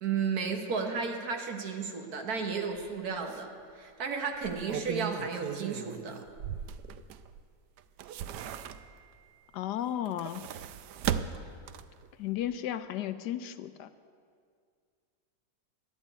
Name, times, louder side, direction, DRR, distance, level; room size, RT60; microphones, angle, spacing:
voice 1, 0.0-6.2, right 5 dB, 60° right, 4 dB, 1.6 m, -33 dB
sound 1, 2.8-2.9 3.3-3.4 4.3-7.4 7.8-9.1 9.9-12.1 12.4-12.5, right 9 dB, 75° right, 1.1 m, -37 dB
voice 2, 9.5-10.5 12.2-13.9, left 11 dB, 75° left, 12 dB, 1.1 m, -34 dB
12.0 x 9.7 x 9.1 m, 2.2 s
omnidirectional pair, 1.9 m